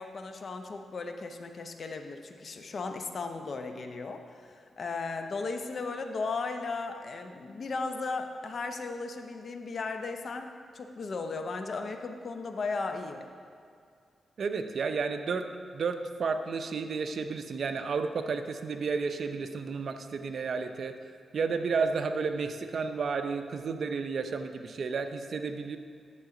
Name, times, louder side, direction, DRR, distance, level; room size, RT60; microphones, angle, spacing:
voice 1, 0.0-13.3, left 3 dB, 55° left, 6 dB, 0.7 m, -36 dB
voice 2, 14.4-15.4 15.7-20.9 21.3-25.8, right 5 dB, 60° right, 7 dB, 0.6 m, -32 dB
11.0 x 7.1 x 3.8 m, 2.2 s
cardioid pair, 90°, 0 cm